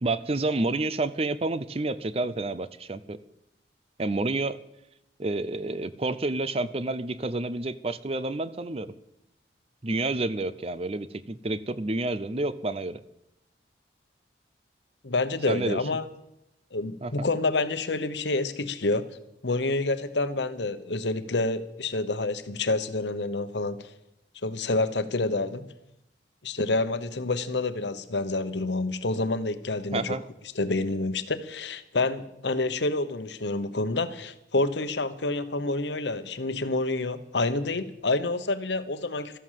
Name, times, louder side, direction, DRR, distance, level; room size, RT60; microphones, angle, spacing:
voice 1, 0.0-3.2 4.0-4.6 5.2-8.9 9.8-13.0 15.5-15.8 17.0-17.1 29.9-30.2, right 2 dB, 35° right, 15 dB, 0.6 m, -29 dB
voice 2, 15.0-16.0 16.7-19.1 19.4-23.9 24.4-25.7 26.4-30.1 30.5-39.4, left 2 dB, 75° left, 12 dB, 1.1 m, -28 dB
13.5 x 11.0 x 7.6 m, 0.83 s
head